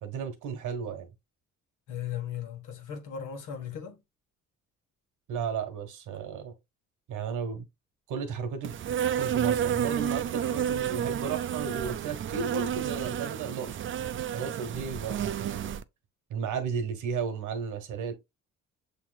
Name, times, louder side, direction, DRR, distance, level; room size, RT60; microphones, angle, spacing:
voice 1, 0.0-1.1 5.3-6.5 7.1-7.7 8.1-8.7 9.2-13.8 14.3-15.8 16.3-18.1, right 6 dB, 90° right, 1.2 m, -34 dB
voice 2, 1.9-4.0, left 8 dB, 85° left, 1.4 m, -37 dB
Insect, 8.6-15.8, right 9 dB, 40° right, 0.4 m, -30 dB
6.9 x 3.0 x 2.3 m
cardioid pair, 90°, 30 cm